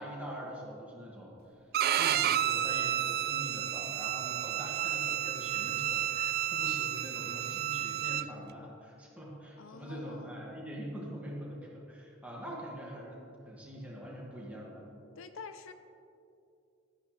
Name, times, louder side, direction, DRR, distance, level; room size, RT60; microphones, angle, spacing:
voice 1, 0.0-1.4 1.9-13.2 13.4-14.8, equal, 5° right, -5 dB, 2.2 m, -43 dB
Bowed string instrument, 1.7-8.2, right 11 dB, 50° right, 0.3 m, -31 dB
voice 2, 9.6-10.4 15.2-15.7, left 5 dB, 70° left, 9 dB, 0.5 m, -47 dB
12.5 x 9.9 x 3.4 m, 2.6 s
head